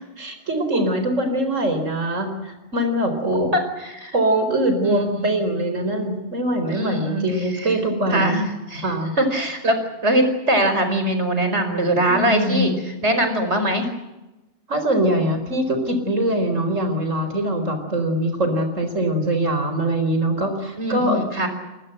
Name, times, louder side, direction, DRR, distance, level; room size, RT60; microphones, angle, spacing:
voice 1, 0.2-3.5 4.1-8.4 8.8-9.1 12.1-12.8 14.7-21.2, right 1 dB, 80° right, 7 dB, 4.7 m, -22 dB
voice 2, 3.5-4.2 4.8-5.3 6.7-7.3 7.6-7.7 8.1-8.4 8.7-8.9 9.2-12.7 13.0-13.9 20.8-21.5, right 1 dB, 60° right, 8 dB, 5.4 m, -22 dB
26.0 x 21.5 x 7.9 m, 1.0 s
omnidirectional pair, 1.3 m